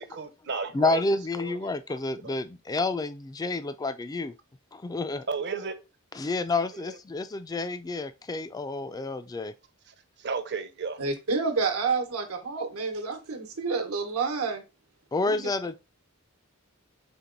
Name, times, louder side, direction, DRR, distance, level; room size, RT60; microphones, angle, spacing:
voice 1, 0.1-1.0 1.4-1.5 2.2-2.3 5.3-5.8 10.2-11.0, right 4 dB, 55° right, 0.7 m, -32 dB
voice 2, 0.7-4.3 4.7-5.3 6.1-9.5 15.1-15.7, left 3 dB, 15° left, 0.3 m, -29 dB
voice 3, 11.0-14.6 15.2-15.5, right 4 dB, 80° right, 1.1 m, -29 dB
4.5 x 3.0 x 3.8 m
head